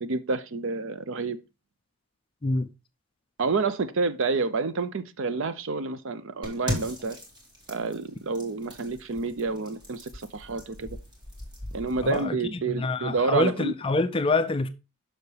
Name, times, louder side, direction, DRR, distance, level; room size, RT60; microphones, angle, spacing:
voice 1, 0.0-1.4 3.4-7.2 7.7-10.9 11.7-13.7, right 4 dB, 60° right, 0.5 m, -29 dB
sound 1, 6.4-12.2, left 1 dB, 20° right, 1.9 m, -39 dB
voice 2, 12.0-14.7, left 3 dB, 25° left, 0.4 m, -26 dB
6.8 x 5.9 x 3.3 m
head